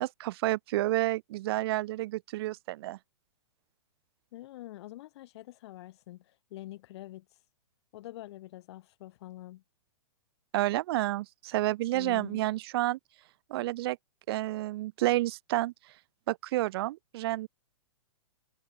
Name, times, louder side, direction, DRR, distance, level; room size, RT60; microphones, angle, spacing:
voice 1, 0.0-3.0 10.5-13.0 13.5-14.0 14.3-15.7 16.3-17.5, right 17 dB, 50° right, 0.4 m, -30 dB
voice 2, 4.3-7.4 7.9-9.6 11.9-12.5, left 16 dB, 55° left, 4.5 m, -46 dB
hypercardioid pair, 125°, 17 cm